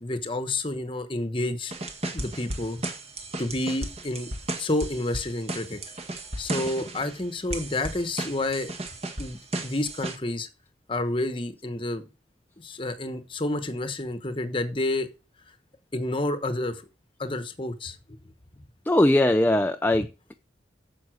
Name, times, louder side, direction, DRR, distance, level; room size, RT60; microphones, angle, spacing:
voice 1, 0.0-1.7 2.1-2.8 3.4-4.3 4.6-5.8 6.4-8.7 9.2-10.5 10.9-12.0 12.6-15.1 15.9-16.8 17.2-18.2, left 2 dB, 30° left, 10 dB, 1.1 m, -29 dB
sound 1, 1.7-7.2 7.5-10.2, right 2 dB, 35° right, 1.6 m, -35 dB
voice 2, 18.9-20.3, left 1 dB, 10° left, 7 dB, 0.4 m, -21 dB
9.5 x 6.8 x 6.3 m, 0.31 s
head